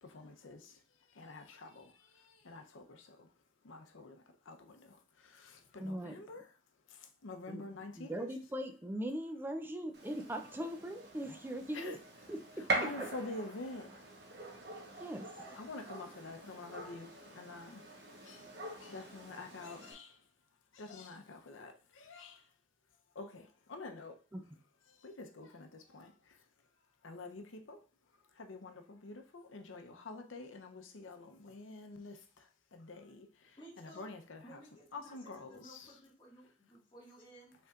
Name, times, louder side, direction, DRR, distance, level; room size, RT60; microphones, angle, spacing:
voice 1, 0.0-0.7 1.2-3.3 3.6-6.4 7.2-8.3 11.7-12.0 12.7-13.9 15.5-17.8 18.2-18.4 18.8-20.2 20.7-22.4 23.2-24.2 25.0-26.1 27.0-27.8 28.4-32.5 32.7-33.3 33.8-34.6 34.9-35.8, left 2 dB, 85° left, 0.7 m, -47 dB
voice 2, 5.8-6.2 7.5-7.6 8.0-12.0 12.3-12.6 15.0-15.6 24.3-24.4, right 1 dB, 10° right, 0.4 m, -40 dB
Gunshot gunfire, 9.9-19.9, right 2 dB, 55° right, 1.0 m, -43 dB
voice 3, 33.6-34.1 34.4-37.5, right 1 dB, 25° left, 1.8 m, -56 dB
5.4 x 3.5 x 2.4 m
head